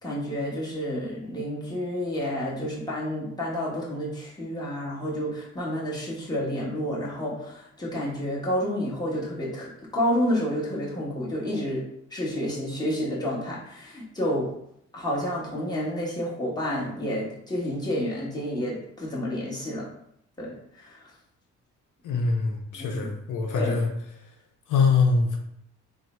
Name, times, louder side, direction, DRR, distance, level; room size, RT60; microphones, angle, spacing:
voice 1, 0.0-11.8 12.1-14.5 14.9-19.9 20.4-21.0 22.7-23.1 23.5-23.8, equal, 15° left, -5 dB, 1.3 m, -30 dB
voice 2, 22.0-23.9 24.7-25.4, left 4 dB, 75° left, 3 dB, 0.6 m, -23 dB
3.6 x 2.1 x 4.3 m, 0.73 s
cardioid pair, 105°, 31 cm